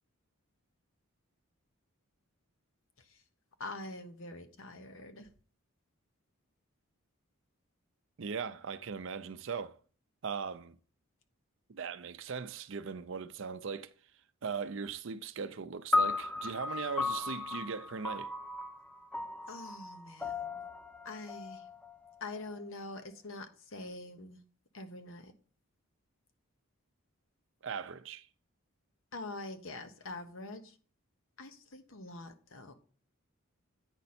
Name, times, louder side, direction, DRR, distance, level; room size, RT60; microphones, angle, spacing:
voice 1, 3.6-5.3 19.5-20.6 21.0-21.7 22.2-24.4 24.7-25.3 29.1-30.8 31.4-32.7, left 2 dB, 65° left, 1.0 m, -45 dB
voice 2, 8.2-9.8 10.2-10.7 11.7-13.9 14.4-18.3 27.6-28.3, right 6 dB, 60° right, 0.5 m, -39 dB
sound 1, 15.9-22.4, left 3 dB, 5° left, 0.4 m, -35 dB
9.0 x 5.2 x 4.2 m
head